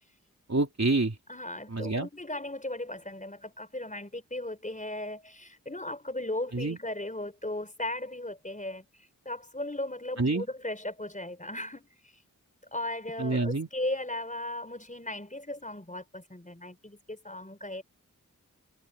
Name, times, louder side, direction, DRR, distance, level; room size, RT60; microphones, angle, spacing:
voice 1, 0.5-1.2 1.7-2.1 6.5-6.8 10.2-10.4 13.2-13.7, right 3 dB, 50° right, 3.7 m, -27 dB
voice 2, 1.3-12.1 12.7-17.8, left 1 dB, 20° left, 4.9 m, -37 dB
wide cardioid pair, 50°, 34 cm